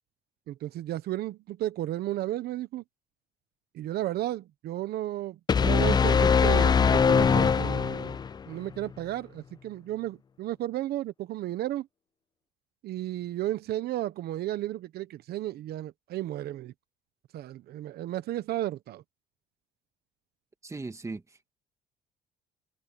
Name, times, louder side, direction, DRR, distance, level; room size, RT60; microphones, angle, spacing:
voice 1, 0.5-2.8 3.7-8.2 8.5-11.9 12.8-16.7 17.3-19.0, right 14 dB, 70° right, 1.0 m, -33 dB
sound 1, 5.5-8.4, left 6 dB, 25° left, 0.4 m, -22 dB
voice 2, 20.6-21.5, right 3 dB, 15° right, 1.8 m, -39 dB
open air
cardioid pair, 110°, 17 cm